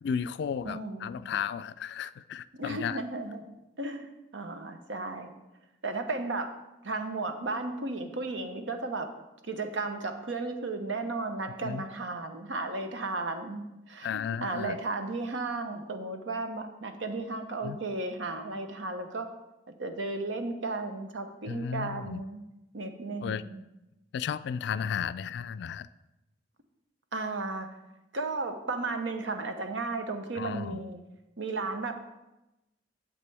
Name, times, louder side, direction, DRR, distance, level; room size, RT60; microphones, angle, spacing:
voice 1, 0.0-3.0 11.6-11.9 14.0-14.8 17.6-17.8 21.5-22.2 23.2-23.4 24.1-25.9 30.3-30.8, left 7 dB, 65° left, 15 dB, 0.3 m, -34 dB
voice 2, 0.6-1.1 2.6-3.4 3.8-5.3 5.8-6.5 6.8-9.1 9.4-19.3 19.7-22.4 22.7-23.6 27.1-27.7 28.1-31.0 31.4-31.9, right 3 dB, 90° right, 6 dB, 0.9 m, -34 dB
9.6 x 7.4 x 3.4 m, 0.96 s
head